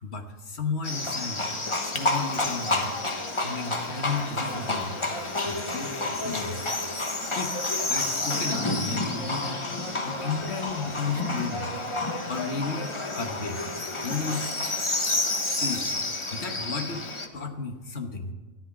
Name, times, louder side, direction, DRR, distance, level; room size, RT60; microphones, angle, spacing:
voice 1, 0.0-1.4 1.8-2.9 3.4-5.0 5.4-6.7 7.3-7.6 7.9-9.6 10.0-13.6 14.0-14.5 15.4-15.9 16.3-18.3, left 4 dB, 50° left, 5 dB, 1.4 m, -33 dB
Livestock farm animals working animals, 0.8-17.3, left 2 dB, 25° left, 0.9 m, -30 dB
13.5 x 10.0 x 6.0 m, 1.3 s
omnidirectional pair, 1.6 m